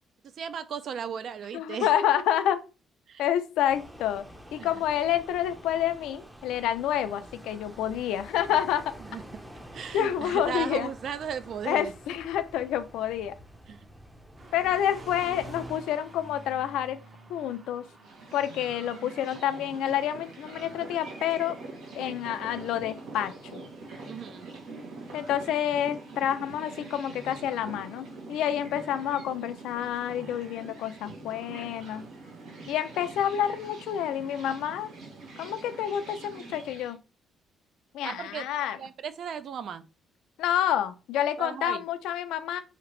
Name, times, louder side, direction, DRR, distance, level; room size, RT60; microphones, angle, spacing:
voice 1, 0.4-1.9 3.1-3.2 4.6-4.7 9.1-9.2 9.7-11.9 13.7-13.8 24.1-24.5 38.0-38.5 38.7-39.9 41.4-41.8, right 7 dB, 65° right, 0.3 m, -36 dB
voice 2, 1.5-2.6 3.2-4.2 4.5-8.9 9.9-10.9 11.7-13.3 14.5-17.0 17.3-17.9 18.3-21.6 21.9-23.6 25.1-32.1 32.7-34.9 35.4-37.0 37.9-38.8 40.4-42.6, left 10 dB, 90° left, 0.3 m, -28 dB
sound 1, 3.7-15.8, equal, 10° right, 0.5 m, -48 dB
sound 2, 14.4-28.4, right 3 dB, 40° right, 0.8 m, -52 dB
sound 3, 18.0-36.9, right 3 dB, 85° right, 1.0 m, -44 dB
2.8 x 2.5 x 3.1 m
cardioid pair, 90°, 0 cm